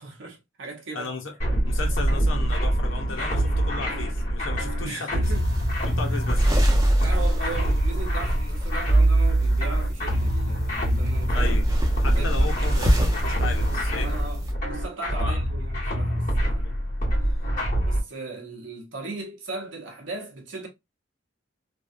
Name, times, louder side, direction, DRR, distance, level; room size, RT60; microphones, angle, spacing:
voice 1, 0.0-1.1 4.8-5.5 6.1-6.2 7.0-11.5 12.0-12.5 13.9-16.8 17.8-20.7, right 3 dB, 65° right, 0.9 m, -38 dB
voice 2, 0.9-1.3 1.6-5.3 5.8-6.5 11.3-11.7 12.0-14.1 15.1-15.4 16.6-16.7, left 4 dB, 80° left, 0.9 m, -35 dB
sound 1, 1.4-18.0, right 1 dB, 40° left, 1.8 m, -24 dB
sound 2, 5.2-14.5, equal, 20° right, 0.8 m, -28 dB
3.4 x 2.3 x 2.6 m
head